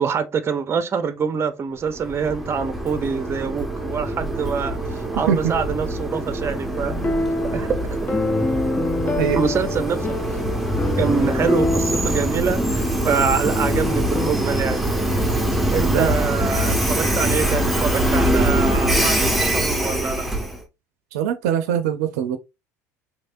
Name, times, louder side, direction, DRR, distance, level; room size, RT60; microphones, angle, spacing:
voice 1, 0.0-6.9 7.5-8.0 9.3-10.2 11.0-14.8 15.7-20.3, right 6 dB, 30° right, 0.6 m, -25 dB
Train, 1.8-20.6, right 1 dB, ahead, 0.9 m, -23 dB
sound 1, 6.9-14.3, left 2 dB, 20° left, 0.5 m, -26 dB
voice 2, 9.0-9.4 15.9-16.1 21.1-22.4, right 9 dB, 70° right, 0.5 m, -22 dB
3.3 x 3.1 x 2.6 m
hypercardioid pair, 70°, 8 cm